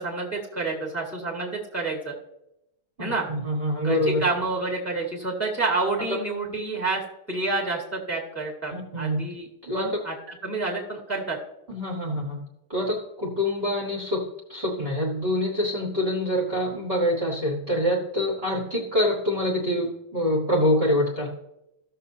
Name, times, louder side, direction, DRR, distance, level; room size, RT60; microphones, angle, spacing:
voice 1, 0.0-2.1 3.0-3.3 3.8-7.0 7.3-9.5 9.7-11.4, right 3 dB, 10° left, 1 dB, 1.6 m, -28 dB
voice 2, 3.0-4.2 8.7-9.2 9.6-9.9 11.7-12.4 12.7-21.3, left 1 dB, 30° right, -2 dB, 1.4 m, -25 dB
15.5 x 6.6 x 2.8 m, 0.85 s
omnidirectional pair, 2.3 m